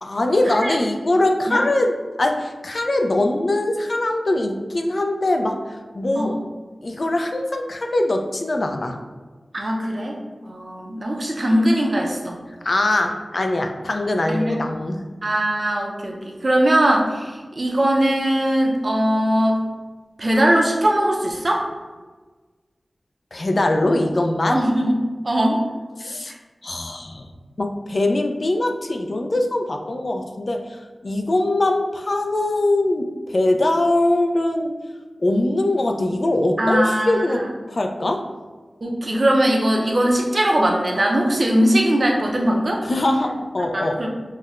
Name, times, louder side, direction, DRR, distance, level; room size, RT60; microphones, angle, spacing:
voice 1, 0.0-6.3 6.8-9.0 12.6-15.0 23.3-24.6 26.0-26.3 26.6-27.3 27.6-34.7 35.2-38.2 42.8-44.0, left 1 dB, 55° left, 4 dB, 0.3 m, -22 dB
voice 2, 9.5-10.2 10.4-12.4 14.3-14.6 15.2-19.6 20.2-21.7 24.5-24.9 25.2-25.6 26.3-26.4 36.6-37.5 38.8-42.8 43.7-44.1, right 1 dB, 50° right, -1 dB, 0.6 m, -20 dB
5.5 x 2.1 x 2.4 m, 1.3 s
wide cardioid pair, 75°, 0 cm